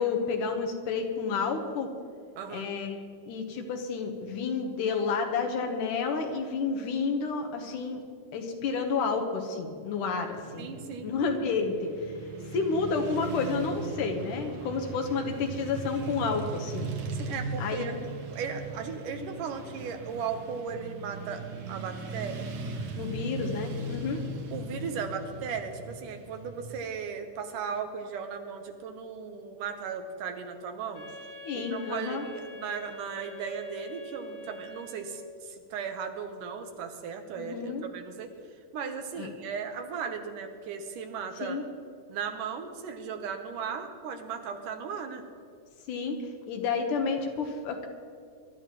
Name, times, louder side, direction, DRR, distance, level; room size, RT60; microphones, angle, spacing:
voice 1, 0.0-1.9 2.5-3.0 3.3-8.0 8.3-10.7 11.0-11.9 12.5-16.9 17.6-17.9 23.0-24.2 31.4-32.2 37.4-37.9 39.2-39.3 41.4-41.6 45.9-46.2 46.5-47.9, left 5 dB, 80° left, 3 dB, 2.7 m, -30 dB
voice 2, 2.4-2.7 10.6-11.1 17.2-22.5 24.5-31.1 31.5-38.3 38.7-41.6 42.1-45.3, right 6 dB, 85° right, 6 dB, 2.6 m, -36 dB
Motorcycle / Traffic noise roadway noise, 10.3-27.0, right 2 dB, 55° right, 1.7 m, -39 dB
Wind instrument woodwind instrument, 30.9-35.4, left 1 dB, 55° left, 1.0 m, -45 dB
23.0 x 12.0 x 3.1 m, 2.1 s
omnidirectional pair, 3.6 m